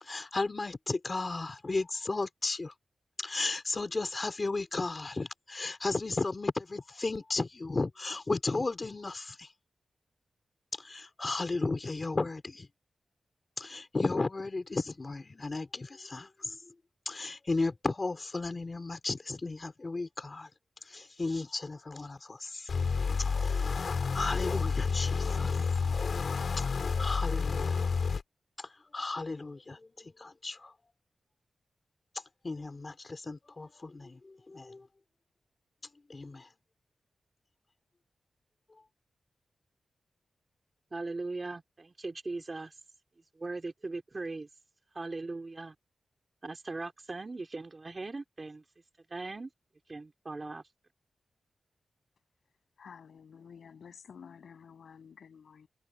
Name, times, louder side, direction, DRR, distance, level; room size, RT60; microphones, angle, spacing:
voice 1, 0.1-2.7 3.2-9.5 10.8-12.7 13.6-16.5 17.0-20.5 20.9-22.7 23.4-25.7 26.6-26.7 27.0-27.8 28.6-29.8 30.2-30.7 32.4-34.2 34.5-34.8 36.1-36.5, left 3 dB, 30° left, 2.9 m, -34 dB
sound 1, 22.7-28.2, left 5 dB, 55° left, 4.4 m, -30 dB
voice 2, 40.9-42.7 43.3-44.5 44.9-45.7 46.4-48.6 49.1-49.5 49.9-50.6, right 3 dB, 30° right, 3.0 m, -39 dB
voice 3, 52.8-55.7, left 6 dB, 80° left, 7.8 m, -51 dB
wide cardioid pair, 145°, 0 cm